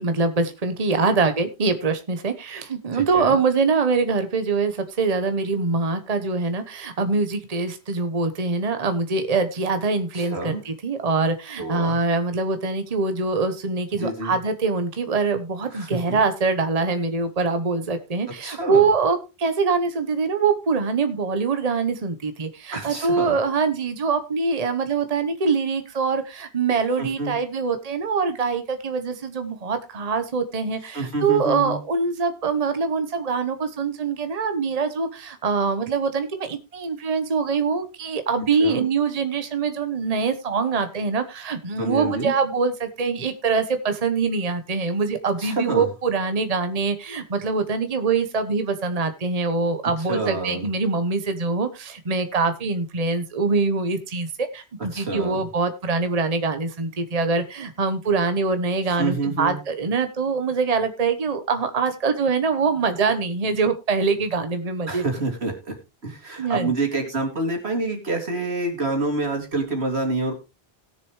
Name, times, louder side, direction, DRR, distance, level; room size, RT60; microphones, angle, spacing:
voice 1, 0.0-65.0 66.4-66.7, right 4 dB, 40° right, 9 dB, 1.1 m, -24 dB
voice 2, 2.9-3.4 10.1-10.6 11.6-12.0 14.0-14.4 15.7-16.2 18.4-18.8 22.7-23.4 27.0-27.3 30.9-31.8 38.6-38.9 41.8-42.3 45.4-45.9 50.1-50.7 54.9-55.5 58.9-59.6 64.9-65.7 66.0-70.4, right 2 dB, 90° right, 3 dB, 2.8 m, -27 dB
18.5 x 6.8 x 3.1 m, 0.27 s
omnidirectional pair, 1.1 m